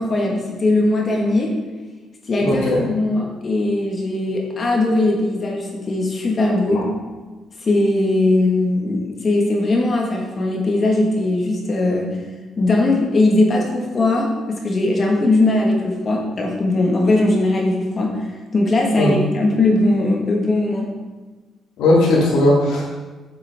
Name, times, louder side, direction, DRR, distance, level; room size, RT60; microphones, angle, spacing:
voice 1, 0.0-1.5 2.3-6.9 7.6-12.1 12.6-18.2 18.5-20.9, left 2 dB, 40° left, 0 dB, 1.5 m, -19 dB
voice 2, 2.4-2.8 19.0-19.1 21.8-22.8, left 1 dB, 85° left, -6 dB, 1.9 m, -16 dB
7.3 x 7.1 x 3.5 m, 1.3 s
cardioid pair, 90°, 0 cm